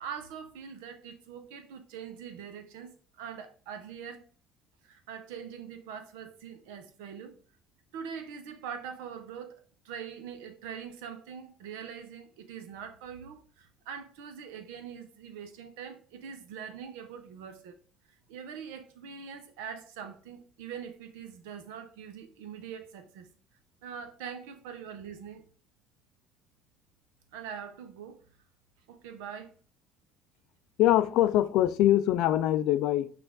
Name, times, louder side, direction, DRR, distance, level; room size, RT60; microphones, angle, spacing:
voice 1, 0.0-4.2 4.8-7.3 7.9-17.8 18.3-23.3 23.8-25.4 27.3-28.2 28.9-29.5, right 7 dB, 85° right, 0.7 m, -43 dB
voice 2, 30.8-33.1, left 13 dB, 70° left, 0.4 m, -23 dB
5.8 x 2.5 x 3.6 m
supercardioid pair, 80°, 0 cm